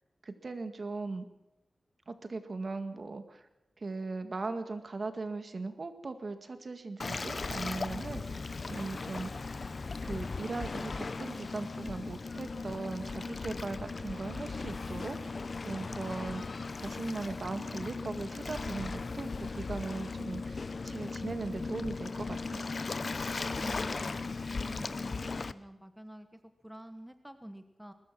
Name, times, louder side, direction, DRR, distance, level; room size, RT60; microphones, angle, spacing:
voice 1, 0.2-1.3 2.1-3.5 3.8-9.5 10.0-22.7, right 3 dB, 50° right, 8 dB, 1.9 m, -39 dB
Waves surf, 7.0-25.5, left 4 dB, 45° left, 0.7 m, -37 dB
voice 2, 23.6-24.2 24.6-27.9, equal, 5° right, 9 dB, 1.2 m, -48 dB
22.0 x 20.0 x 6.1 m, 0.92 s
wide cardioid pair, 115°, 0 cm